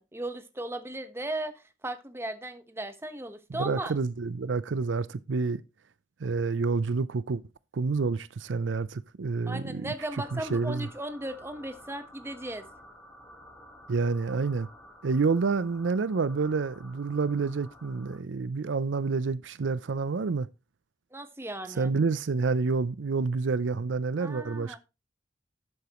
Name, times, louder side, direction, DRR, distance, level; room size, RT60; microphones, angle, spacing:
voice 1, 0.0-1.5 1.8-3.9 9.5-12.6 21.1-21.9 24.2-24.8, right 1 dB, 15° right, 1.0 m, -36 dB
voice 2, 3.6-5.6 6.2-7.4 7.7-9.9 10.3-10.9 13.9-14.7 15.0-20.5 21.7-24.8, right 4 dB, 75° right, 0.5 m, -28 dB
sound 1, 10.0-18.2, equal, 10° left, 2.7 m, -51 dB
12.0 x 8.1 x 3.0 m
head